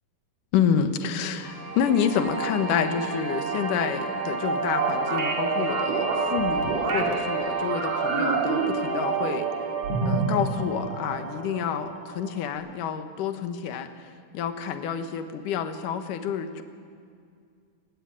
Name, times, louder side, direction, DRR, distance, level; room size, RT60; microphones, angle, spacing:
voice 1, 0.5-9.5 10.0-13.9 14.3-16.6, left 7 dB, 75° left, 8 dB, 2.8 m, -28 dB
sound 1, 1.4-12.5, right 5 dB, 85° right, 4.5 m, -31 dB
sound 2, 4.8-7.1 7.6-9.5 9.8-10.4, right 4 dB, 55° right, 3.7 m, -27 dB
26.5 x 16.5 x 9.8 m, 2.3 s
omnidirectional pair, 3.8 m